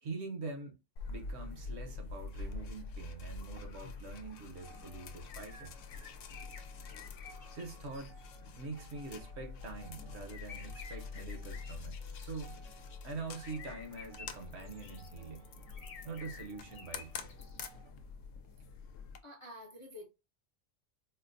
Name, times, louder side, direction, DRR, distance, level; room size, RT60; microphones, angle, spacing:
voice 1, 0.0-0.8 1.1-5.7 7.5-8.2 8.6-12.6 13.0-15.5 16.0-17.3, right 3 dB, 60° right, 1.0 m, -44 dB
sound 1, 1.0-19.2, left 4 dB, 80° left, 0.9 m, -46 dB
sound 2, 4.5-17.9, right 6 dB, 80° right, 1.3 m, -62 dB
sound 3, 5.3-8.6 10.3-12.5 13.3-15.1 15.7-17.6, left 5 dB, 55° left, 0.9 m, -53 dB
voice 2, 19.2-20.1, left 1 dB, 35° left, 0.5 m, -49 dB
4.3 x 2.1 x 2.5 m
omnidirectional pair, 1.3 m